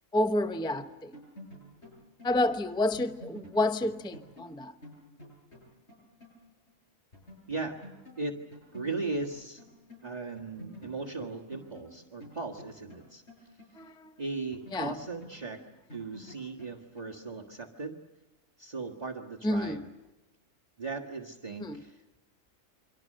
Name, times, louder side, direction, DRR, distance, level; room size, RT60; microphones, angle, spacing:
voice 1, 0.1-1.1 2.2-4.7 13.8-14.1 14.7-14.9 19.4-19.8 21.6-21.8, left 1 dB, 5° left, 0.7 m, -29 dB
sound 1, 0.6-6.4 6.7-6.8 7.1-10.1 10.4-14.1 14.5-17.3, equal, 55° left, 8.4 m, -51 dB
voice 2, 8.7-9.6 10.0-13.2 14.2-15.6 15.9-18.0 18.6-19.9 20.8-22.0, right 3 dB, 30° right, 1.7 m, -37 dB
29.0 x 24.5 x 6.6 m
omnidirectional pair, 1.4 m